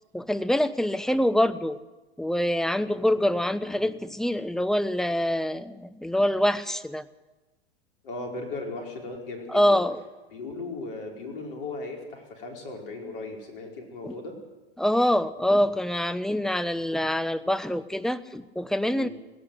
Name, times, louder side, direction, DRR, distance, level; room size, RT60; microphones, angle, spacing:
voice 1, 0.1-1.8 2.2-7.1 9.5-10.0 14.0-14.1 14.8-19.1, equal, ahead, 11 dB, 0.6 m, -25 dB
voice 2, 8.0-9.8 10.3-14.3 19.0-19.1, left 3 dB, 60° left, 2 dB, 4.9 m, -37 dB
18.5 x 17.5 x 8.0 m, 1.1 s
figure-of-eight pair, 95°, 31 cm